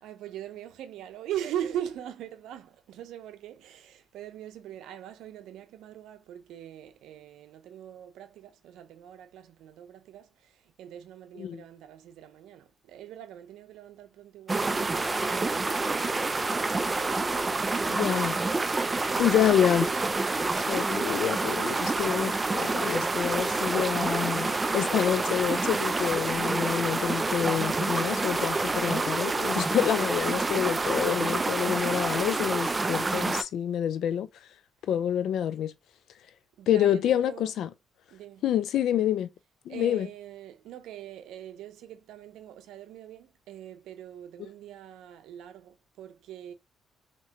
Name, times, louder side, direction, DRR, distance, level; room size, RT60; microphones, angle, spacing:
voice 1, 0.0-18.1 36.6-37.5 38.1-38.4 39.7-46.5, right 10 dB, 85° right, 0.6 m, -41 dB
sound 1, 14.5-33.4, right 3 dB, 25° right, 0.4 m, -28 dB
voice 2, 17.9-18.4 19.2-20.0 20.5-34.3 34.8-35.7 36.7-37.7 38.4-39.3 39.7-40.1, left 10 dB, 75° left, 0.4 m, -27 dB
sound 2, 19.8-28.1, right 7 dB, 65° right, 0.9 m, -51 dB
3.2 x 2.9 x 2.8 m
cardioid pair, 90°, 0 cm